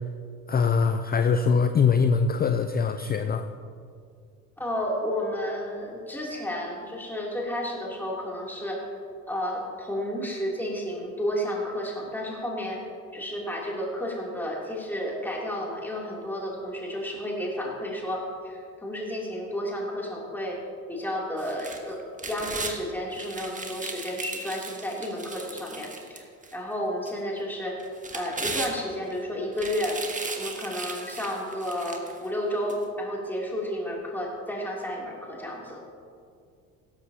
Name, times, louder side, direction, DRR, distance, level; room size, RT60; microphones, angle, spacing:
voice 1, 0.5-3.4, left 5 dB, 20° left, 8 dB, 0.5 m, -22 dB
voice 2, 4.6-8.8 9.3-12.8 13.1-20.6 20.9-22.0 22.3-26.3 26.5-27.8 28.1-30.0 30.3-35.8, equal, 5° left, -3 dB, 3.0 m, -32 dB
sound 1, 21.4-22.8 23.1-26.5 27.1-27.2 27.8-29.1 29.5-32.2 32.7-32.8, right 3 dB, 15° right, 1.5 m, -36 dB
16.5 x 13.5 x 2.9 m, 2.3 s
hypercardioid pair, 65°, 47 cm